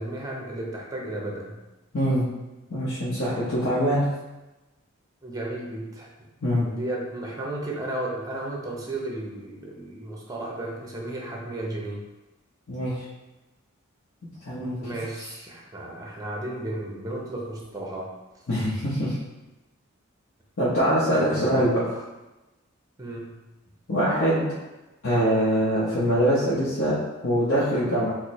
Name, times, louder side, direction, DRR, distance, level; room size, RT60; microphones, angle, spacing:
voice 1, 0.0-1.6 5.2-6.1 6.6-12.0 14.6-18.1 18.3-18.4 21.1-21.7 23.0-23.4, right 1 dB, 15° right, -2 dB, 0.6 m, -34 dB
voice 2, 1.9-2.2 2.7-4.0 6.4-6.7 12.7-13.0 14.4-14.8 15.2-15.3 18.5-19.2 20.6-21.8 23.9-24.5 25.0-28.1, equal, 65° left, -9 dB, 0.8 m, -23 dB
4.2 x 2.1 x 3.0 m, 1.1 s
head